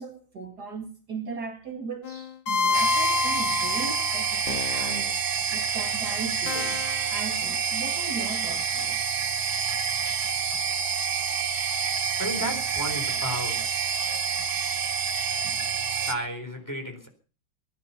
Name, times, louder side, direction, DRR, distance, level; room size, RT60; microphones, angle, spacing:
voice 1, 0.0-5.2 5.5-6.8 7.1-9.2 10.0-10.3, right 4 dB, 55° right, 2.5 m, -38 dB
sound 1, 2.0-5.1 6.5-7.1, left 4 dB, 70° left, 2.0 m, -28 dB
sound 2, 2.7-16.2, right 6 dB, 90° right, 2.1 m, -28 dB
voice 2, 11.2-11.6 12.2-13.6 15.9-17.1, right 1 dB, 10° left, 4.0 m, -33 dB
19.5 x 12.0 x 5.7 m
omnidirectional pair, 2.1 m